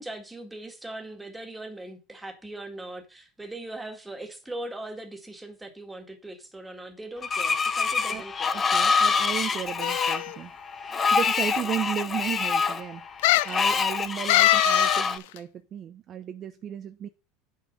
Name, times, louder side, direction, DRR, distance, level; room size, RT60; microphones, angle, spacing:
voice 1, 0.0-8.6, right 1 dB, 10° right, 1.9 m, -40 dB
Screech, 7.2-15.2, left 5 dB, 25° left, 1.0 m, -26 dB
voice 2, 8.1-10.5 11.1-13.0 13.4-17.1, right 10 dB, 40° right, 0.7 m, -34 dB
sound 1, 9.8-10.4 11.2-11.3 11.6-11.7 13.2-13.6 14.3-15.1 15.4-15.5, left 17 dB, 80° left, 0.4 m, -22 dB
9.2 x 6.2 x 5.3 m
supercardioid pair, 120°, 0 cm